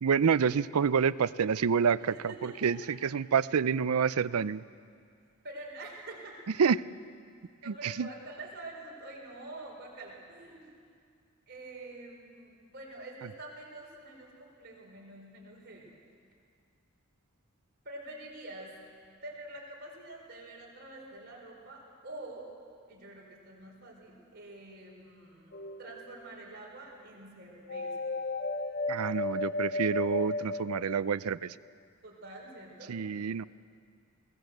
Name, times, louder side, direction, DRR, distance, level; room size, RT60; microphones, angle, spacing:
voice 1, 0.0-4.6 6.6-6.8 7.7-8.1 28.9-31.5 32.9-33.4, right 6 dB, 90° right, 18 dB, 0.5 m, -28 dB
voice 2, 2.1-2.9 5.4-6.4 7.6-10.7 11.5-15.9 17.8-18.8 19.2-22.5 22.9-28.0 32.0-33.0, right 2 dB, 50° right, -2 dB, 4.5 m, -46 dB
sound 1, 25.5-26.3 27.7-31.5, left 3 dB, 45° left, 0.7 m, -34 dB
22.0 x 17.5 x 7.9 m, 2.2 s
head